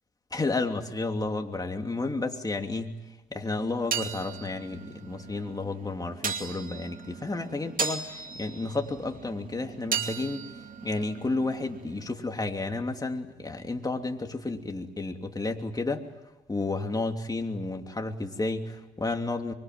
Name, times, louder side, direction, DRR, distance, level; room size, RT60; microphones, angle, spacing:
voice 1, 0.3-3.0 3.3-10.5 10.8-16.1 16.5-19.5, left 3 dB, 20° left, 4 dB, 2.9 m, -31 dB
sound 1, 3.5-12.1, right 6 dB, 45° right, 2.6 m, -37 dB
25.0 x 24.5 x 9.5 m, 1.0 s
cardioid pair, 90°, 20 cm